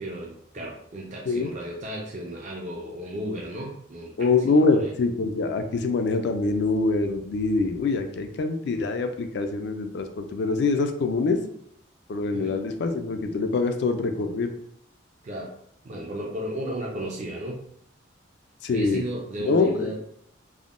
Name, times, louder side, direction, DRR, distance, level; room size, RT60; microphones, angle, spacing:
voice 1, 0.0-4.9 12.3-12.6 15.2-15.5 15.8-17.7 18.7-20.0, equal, 35° right, -2 dB, 0.4 m, -34 dB
voice 2, 4.2-11.4 12.1-14.5 18.6-19.0 19.4-20.0, left 3 dB, 55° left, 7 dB, 0.3 m, -24 dB
3.4 x 2.1 x 2.4 m, 0.68 s
head